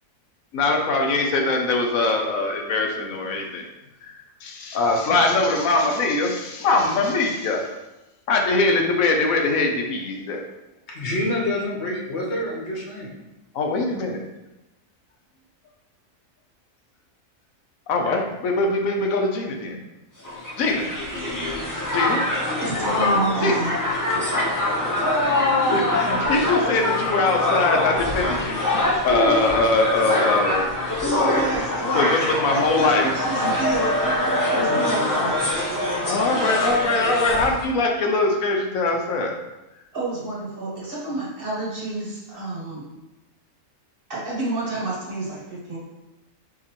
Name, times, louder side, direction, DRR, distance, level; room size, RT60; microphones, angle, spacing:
voice 1, 0.5-3.7 4.0-7.7 8.3-10.4 13.6-14.2 17.9-19.8 20.6-20.8 21.9-22.2 23.4-23.5 25.7-28.6 29.0-30.7 31.0-31.4 31.9-33.0 36.0-39.4, left 3 dB, 80° left, 2 dB, 1.1 m, -22 dB
voice 2, 10.9-13.1, left 1 dB, 55° left, -3 dB, 1.2 m, -27 dB
Crowd, 20.2-37.6, left 1 dB, 20° left, 0.7 m, -24 dB
voice 3, 22.6-23.7 28.4-28.5 29.1-29.4 31.0-32.2 32.5-35.4 39.9-42.8 44.1-45.8, right 2 dB, 45° right, -5 dB, 1.3 m, -28 dB
4.8 x 3.6 x 2.9 m, 0.97 s
omnidirectional pair, 1.4 m